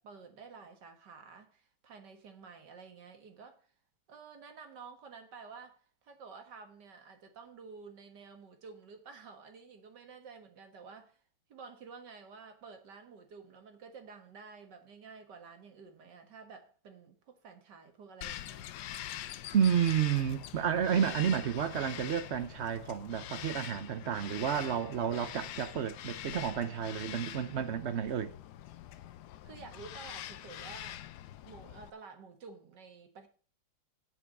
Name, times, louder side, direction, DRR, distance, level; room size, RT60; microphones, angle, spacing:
voice 1, 0.0-3.7 4.1-11.2 11.5-18.7 24.6-24.9 29.4-31.1 31.4-33.3, right 5 dB, 60° right, 2.1 m, -51 dB
Bird vocalization bird call bird song, 18.2-31.9, left 12 dB, 70° left, 1.0 m, -44 dB
voice 2, 19.5-28.3, right 8 dB, 75° right, 0.6 m, -31 dB
7.7 x 7.1 x 7.4 m
omnidirectional pair, 2.1 m